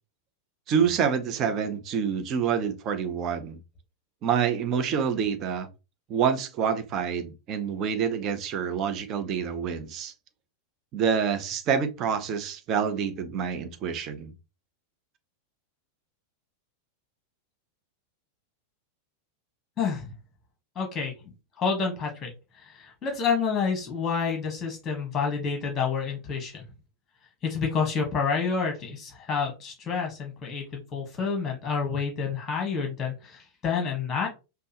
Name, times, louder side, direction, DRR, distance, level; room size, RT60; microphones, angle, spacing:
voice 1, 0.7-3.6 4.2-5.7 6.1-10.1 10.9-14.3, right 7 dB, 35° right, 0.7 m, -27 dB
voice 2, 19.8-20.1 20.7-21.1 21.6-22.3 22.6-26.6 27.4-34.3, left 5 dB, 25° left, 1.3 m, -28 dB
5.3 x 2.2 x 2.9 m
figure-of-eight pair, 90°, 0 cm